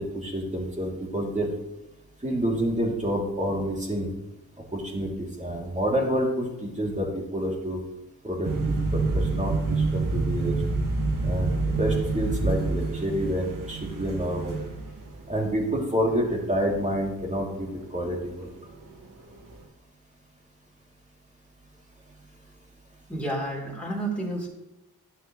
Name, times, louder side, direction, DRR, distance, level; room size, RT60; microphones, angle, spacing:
voice 1, 0.0-1.5 2.2-4.1 4.7-7.8 8.2-10.6 11.2-14.6 15.3-18.5, equal, 20° right, -2 dB, 3.1 m, -28 dB
sound 1, 8.4-17.8 18.1-18.4 18.7-19.1 19.4-19.6, right 3 dB, 55° right, 2.0 m, -28 dB
voice 2, 23.1-24.5, right 1 dB, 5° left, -5 dB, 3.6 m, -30 dB
12.0 x 7.6 x 3.3 m, 0.96 s
cardioid pair, 65°, 38 cm